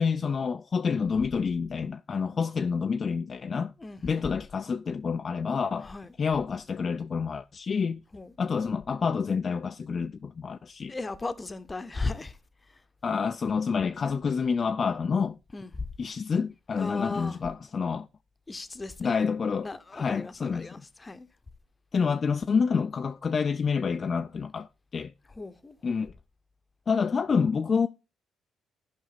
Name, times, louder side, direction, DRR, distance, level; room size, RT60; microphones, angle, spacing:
voice 1, 0.0-3.7 4.0-5.9 6.2-8.0 8.4-11.0 13.0-15.4 16.0-18.1 19.0-20.7 21.9-25.1 25.8-26.1 26.9-27.9, left 5 dB, 40° left, 0.3 m, -28 dB
voice 2, 3.8-4.2 5.8-6.1 8.1-8.3 10.9-12.4 12.7-12.8 15.5-15.8 16.8-17.4 18.5-19.2 19.6-21.3 25.4-25.8, left 3 dB, 25° left, 0.8 m, -36 dB
12.5 x 5.2 x 4.0 m
cardioid pair, 90°, 0 cm